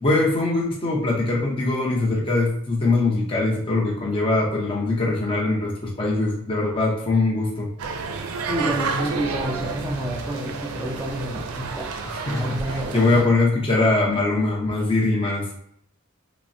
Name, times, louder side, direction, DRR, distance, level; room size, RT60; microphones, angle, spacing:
voice 1, 0.0-7.7 12.3-15.6, left 2 dB, 25° left, -4 dB, 0.7 m, -22 dB
sound 1, 7.8-13.2, right 4 dB, 90° right, 0.4 m, -30 dB
voice 2, 8.5-11.9 12.4-13.2, right 1 dB, 10° right, -2 dB, 0.5 m, -29 dB
3.3 x 2.0 x 2.6 m, 0.69 s
head